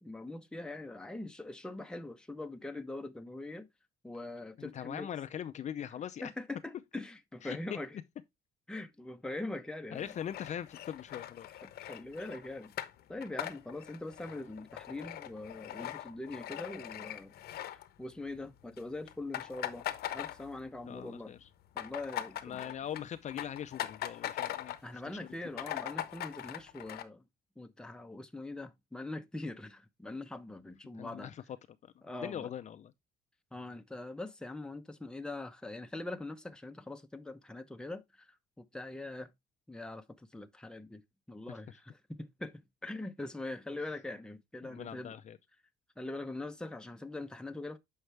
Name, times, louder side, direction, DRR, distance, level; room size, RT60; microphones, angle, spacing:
voice 1, 0.0-3.7 4.0-5.1 6.2-8.0 8.7-10.1 11.6-12.7 13.1-17.3 17.6-19.9 20.1-21.3 21.7-22.8 24.8-27.2 27.6-31.3 32.0-32.5 33.5-39.3 39.7-41.0 41.3-45.1 46.0-47.8, left 2 dB, 5° left, 0.8 m, -42 dB
voice 2, 4.6-6.3 7.4-7.8 9.9-11.7 20.9-21.5 22.4-24.8 31.0-31.4 31.8-31.9 32.2-32.9 44.6-45.4, left 9 dB, 45° left, 0.6 m, -41 dB
sound 1, 10.0-18.4 18.6-18.8 19.1-20.9 21.2-24.9 25.3-25.4 25.5-27.0, left 12 dB, 65° left, 0.9 m, -41 dB
7.8 x 5.6 x 3.4 m
cardioid pair, 110°, 17 cm